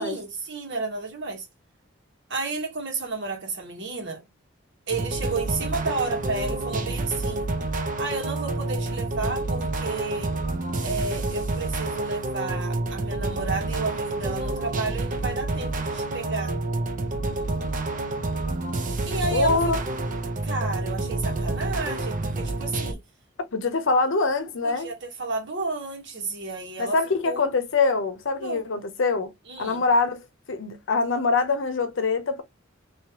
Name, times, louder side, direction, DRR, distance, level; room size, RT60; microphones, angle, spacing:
voice 1, 0.0-1.5 2.3-4.2 4.9-7.5 8.0-10.3 10.8-16.6 19.1-19.7 20.4-23.0 24.6-27.0 27.2-27.4 28.4-28.6 29.5-29.8, right 3 dB, 65° right, 1.5 m, -32 dB
sound 1, 4.9-22.9, right 2 dB, 40° right, 0.6 m, -28 dB
voice 2, 19.3-19.8 23.5-24.9 26.8-29.3 29.6-32.4, left 4 dB, 65° left, 0.7 m, -24 dB
3.2 x 2.8 x 2.9 m
head